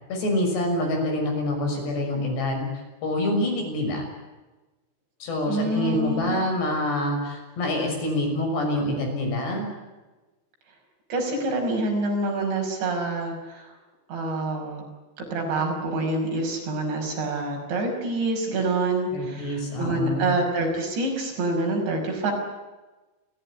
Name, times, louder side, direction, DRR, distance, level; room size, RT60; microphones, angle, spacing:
voice 1, 0.1-2.7 3.0-4.1 5.2-9.7 19.1-20.3, left 1 dB, 60° left, 2 dB, 8.3 m, -26 dB
voice 2, 5.5-6.4 11.1-13.7 14.1-14.8 15.2-22.3, right 2 dB, 65° right, 1 dB, 7.9 m, -26 dB
30.0 x 16.0 x 9.9 m, 1.1 s
omnidirectional pair, 5.5 m